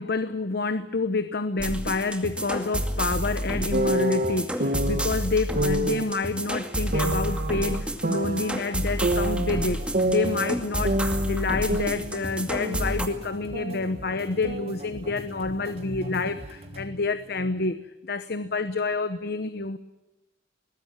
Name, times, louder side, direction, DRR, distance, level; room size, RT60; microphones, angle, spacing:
voice 1, 0.0-17.8 18.0-19.8, left 3 dB, 60° left, 11 dB, 1.0 m, -28 dB
sound 1, 1.6-13.1, right 1 dB, 5° right, 2.3 m, -30 dB
sound 2, 3.7-5.1 5.6-6.1 6.9-8.6 9.0-10.6 10.8-13.0 13.3-14.8, right 1 dB, 50° right, 1.7 m, -27 dB
sound 3, 9.1-16.9, right 1 dB, 35° right, 3.1 m, -43 dB
22.5 x 20.0 x 8.8 m, 1.0 s
head